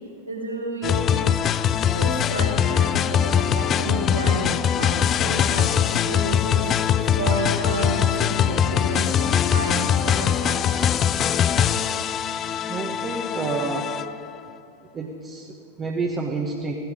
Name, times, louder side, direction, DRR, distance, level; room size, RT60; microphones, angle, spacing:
voice 1, 0.3-1.3 1.8-4.4 4.7-6.7 7.2-10.8, right 2 dB, 80° right, -4 dB, 4.3 m, -31 dB
sound 1, 0.8-14.3, left 9 dB, 30° left, 0.4 m, -22 dB
voice 2, 12.7-13.9 14.9-16.7, right 4 dB, 20° right, 0 dB, 1.3 m, -29 dB
16.0 x 15.5 x 5.1 m, 2.3 s
figure-of-eight pair, 90°, 0 cm